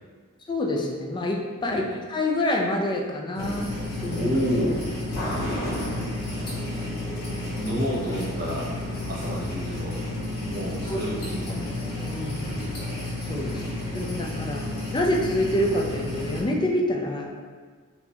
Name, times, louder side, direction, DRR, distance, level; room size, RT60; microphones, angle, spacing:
voice 1, 0.5-3.8 4.0-4.3 10.4-10.6 10.9-11.0 11.5-11.6 12.0-12.3 13.2-14.6 14.9-17.3, left 1 dB, 20° left, 0 dB, 0.4 m, -27 dB
sound 1, 3.3-16.4, left 1 dB, 45° left, 1.0 m, -31 dB
voice 2, 4.1-4.8 7.5-8.7 9.1-10.0 10.4-11.5 14.5-14.7, equal, 40° right, -4 dB, 0.6 m, -29 dB
4.3 x 2.2 x 2.8 m, 1.6 s
head